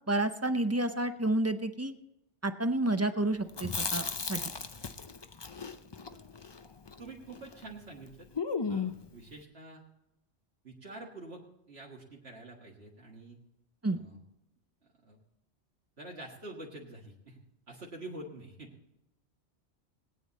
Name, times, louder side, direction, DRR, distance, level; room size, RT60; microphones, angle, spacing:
voice 1, 0.1-1.9 2.4-4.0 4.3-4.4 13.8-14.0, right 2 dB, 20° right, 9 dB, 0.5 m, -29 dB
Chewing mastication, 3.5-7.7 7.9-8.0 8.3-9.1, left 5 dB, 30° left, 0.5 m, -36 dB
voice 2, 7.0-8.3 8.7-9.8 10.6-11.4 11.7-13.4 13.9-14.2 15.0-15.2 16.0-17.4 17.7-19.0, right 2 dB, 65° right, -3 dB, 2.0 m, -47 dB
20.0 x 9.3 x 4.1 m, 0.87 s
omnidirectional pair, 1.2 m